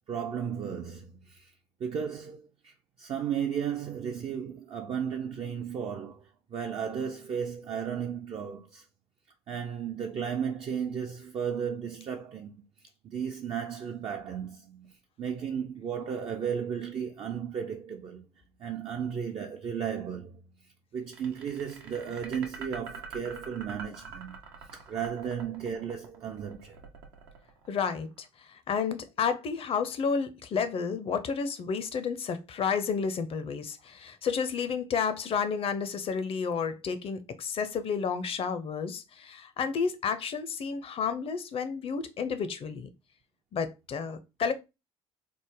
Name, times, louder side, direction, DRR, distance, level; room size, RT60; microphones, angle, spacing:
voice 1, 0.1-1.5 1.8-8.9 9.5-18.3 18.6-20.4 20.9-26.8, right 7 dB, 45° right, 0.4 m, -35 dB
sound 1, 21.1-28.3, right 5 dB, 80° right, 0.7 m, -45 dB
voice 2, 27.7-28.3 28.5-42.9 43.5-44.5, left 6 dB, 45° left, 0.5 m, -31 dB
3.2 x 2.0 x 3.5 m
hypercardioid pair, 60°, 14 cm